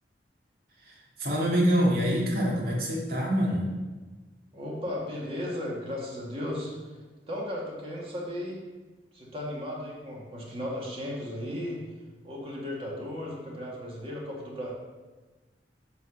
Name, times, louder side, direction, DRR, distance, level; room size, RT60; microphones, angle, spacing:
voice 1, 0.8-3.7, equal, 55° right, -4 dB, 2.4 m, -26 dB
voice 2, 4.5-6.7 7.3-8.6 9.1-11.8 12.2-14.7, left 1 dB, 30° right, -4 dB, 2.0 m, -35 dB
9.0 x 4.1 x 6.6 m, 1.3 s
head